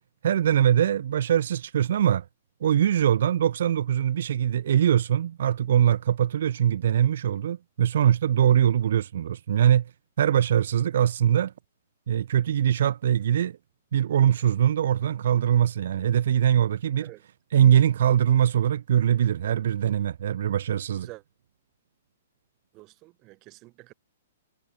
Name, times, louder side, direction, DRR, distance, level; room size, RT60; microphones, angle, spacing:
voice 1, 0.2-2.2 2.6-9.9 10.2-11.5 12.1-13.6 13.9-17.1 17.5-21.1, right 10 dB, 60° right, 3.2 m, -22 dB
voice 2, 22.7-23.9, right 21 dB, 35° right, 4.7 m, -47 dB
figure-of-eight pair, 120°, 0 cm